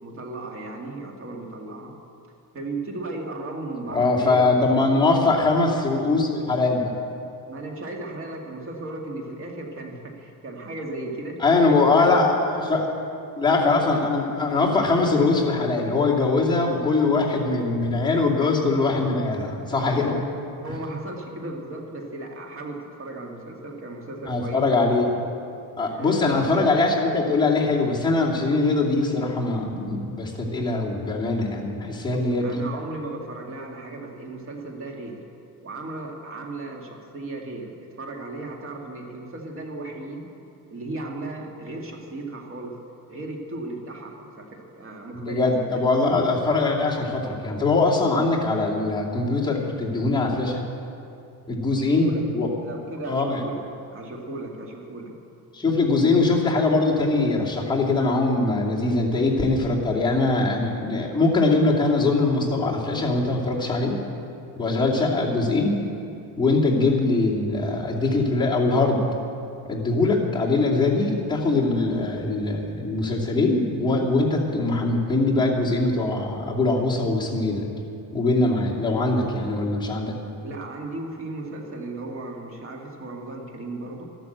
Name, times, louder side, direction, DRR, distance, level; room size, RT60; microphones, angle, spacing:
voice 1, 0.0-1.9 2.5-5.2 7.5-11.4 11.9-12.3 20.6-24.6 25.9-26.8 32.1-35.2 35.6-40.3 40.7-42.8 43.1-45.8 52.0-52.2 52.6-53.6 53.9-55.1 79.1-79.3 80.4-84.0, right 2 dB, 35° right, 1 dB, 2.1 m, -36 dB
voice 2, 3.9-6.9 11.4-12.9 13.4-20.2 24.3-25.3 25.8-32.6 45.2-50.6 51.5-52.5 53.1-53.4 55.5-64.0 64.6-65.8 66.3-69.0 69.6-77.7 78.1-80.1, left 3 dB, 10° left, -5 dB, 2.5 m, -22 dB
12.0 x 12.0 x 8.0 m, 2.6 s
cardioid pair, 145°, 37 cm